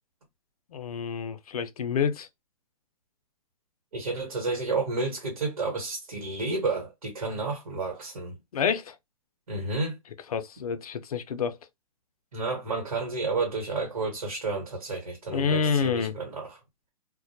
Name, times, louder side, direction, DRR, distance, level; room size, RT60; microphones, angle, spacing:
voice 1, 0.7-2.3 8.5-9.0 10.3-11.6 15.3-16.2, left 6 dB, 85° left, 0.5 m, -28 dB
voice 2, 3.9-8.4 9.5-10.0 12.3-16.6, right 3 dB, 85° right, 1.2 m, -31 dB
2.2 x 2.0 x 2.7 m
hypercardioid pair, 120°, 18 cm